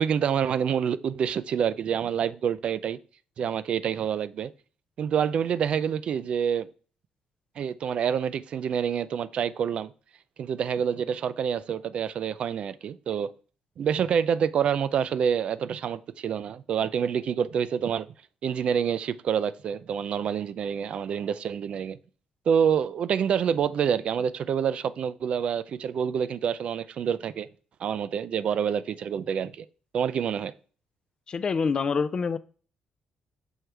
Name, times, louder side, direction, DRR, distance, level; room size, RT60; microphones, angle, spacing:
voice 1, 0.0-3.0 3.4-4.5 5.0-6.7 7.6-9.9 10.4-13.3 13.8-18.1 18.4-22.0 22.5-27.5 27.8-29.7 29.9-30.5, right 8 dB, 55° right, 0.3 m, -27 dB
voice 2, 31.3-32.4, left 5 dB, 40° left, 0.4 m, -26 dB
6.2 x 4.6 x 3.3 m
cardioid pair, 100°, 2 cm